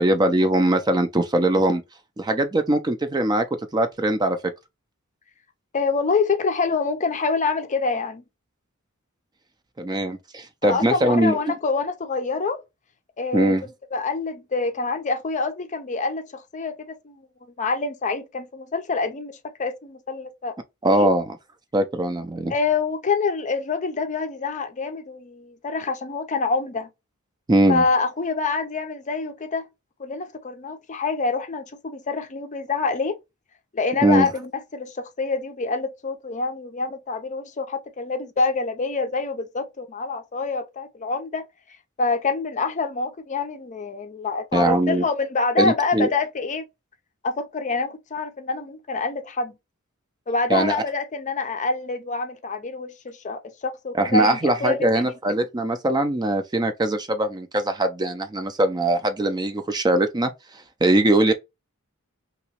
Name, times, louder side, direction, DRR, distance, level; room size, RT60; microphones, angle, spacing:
voice 1, 0.0-1.8 2.2-3.4 3.7-4.4 9.8-11.5 13.3-13.6 20.8-21.4 21.7-22.5 27.5-27.8 34.0-34.3 44.5-45.0 45.6-46.1 50.5-50.7 53.9-60.3 60.8-61.3, right 1 dB, 20° right, 0.4 m, -21 dB
voice 2, 5.7-8.2 10.6-12.6 13.2-13.6 13.9-17.3 17.6-19.3 19.6-20.5 20.9-21.1 22.5-26.9 27.7-29.6 30.0-33.2 33.7-41.5 42.0-46.6 47.2-49.5 50.3-55.1, left 4 dB, 35° left, 0.5 m, -26 dB
2.9 x 2.9 x 2.9 m
head